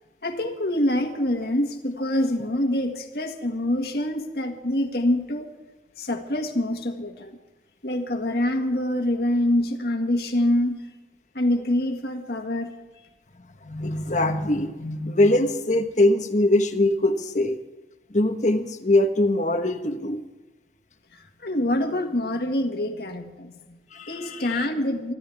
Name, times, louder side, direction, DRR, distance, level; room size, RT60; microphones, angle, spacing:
voice 1, 0.2-5.5 6.0-7.4 7.8-10.8 11.3-12.7 21.1-23.8 24.1-25.1, left 1 dB, 60° left, 4 dB, 1.9 m, -25 dB
voice 2, 13.6-17.6 18.1-20.2 23.9-24.7, left 1 dB, 45° left, 6 dB, 1.4 m, -22 dB
25.0 x 13.0 x 3.6 m, 1.2 s
head